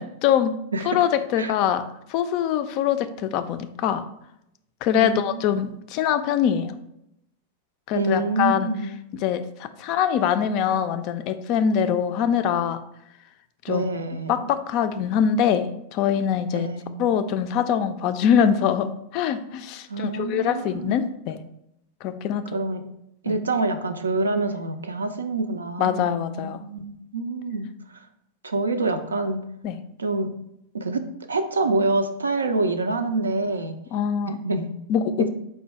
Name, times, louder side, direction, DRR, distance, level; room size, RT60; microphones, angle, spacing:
voice 1, 0.0-0.5 0.9-1.8 2.1-4.0 4.8-6.8 7.9-8.7 9.2-12.8 13.7-13.8 14.3-16.7 17.0-21.4 22.0-22.4 23.3-23.4 25.8-26.6 29.6-29.7 33.9-34.4 34.9-35.3, left 8 dB, 40° left, 10 dB, 0.3 m, -23 dB
voice 2, 0.7-1.0 1.4-1.5 4.9-5.4 7.9-9.0 13.7-14.5 16.5-17.1 19.9-21.0 22.5-22.8 23.2-27.7 28.4-29.4 30.0-30.3 30.7-33.8 34.3-34.7 35.2-35.3, right 3 dB, 75° right, 8 dB, 0.4 m, -26 dB
4.5 x 2.2 x 4.3 m, 0.79 s
figure-of-eight pair, 90°, 0 cm